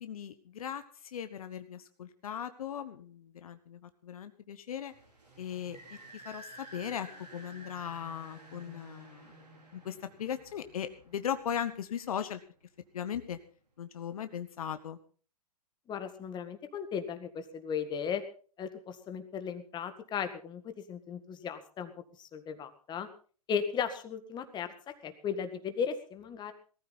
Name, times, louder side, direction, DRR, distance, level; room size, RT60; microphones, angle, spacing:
voice 1, 0.0-4.9 5.4-5.8 6.1-9.4 9.7-12.4 12.9-13.4 13.8-15.0, left 9 dB, 65° left, 10 dB, 1.2 m, -38 dB
sound 1, 4.9-12.2, right 1 dB, 90° right, 4.2 m, -52 dB
voice 2, 15.9-18.2 18.6-23.1 23.5-26.5, left 7 dB, 20° left, 8 dB, 1.9 m, -36 dB
19.0 x 13.5 x 4.1 m, 0.40 s
figure-of-eight pair, 110°, 20 cm